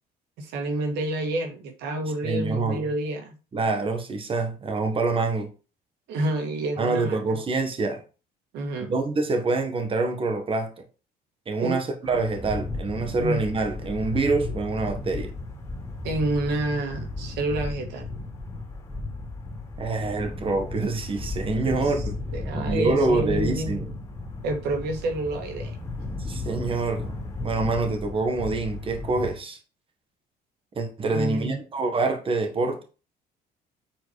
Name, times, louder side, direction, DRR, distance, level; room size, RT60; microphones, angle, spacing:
voice 1, 0.4-3.4 6.1-7.4 8.5-8.9 11.6-11.8 13.2-13.4 16.0-18.1 21.6-21.9 22.3-23.7 24.4-25.8 31.1-31.6, right 2 dB, 80° right, 1.8 m, -28 dB
voice 2, 2.2-2.8 3.5-5.5 6.8-8.0 8.8-10.7 11.5-15.3 19.8-22.1 22.5-23.8 26.2-27.1 27.4-29.6 30.7-32.8, right 3 dB, 30° right, 1.6 m, -26 dB
sound 1, 12.1-29.3, left 2 dB, 20° left, 3.1 m, -34 dB
7.5 x 4.5 x 4.7 m
cardioid pair, 110°, 17 cm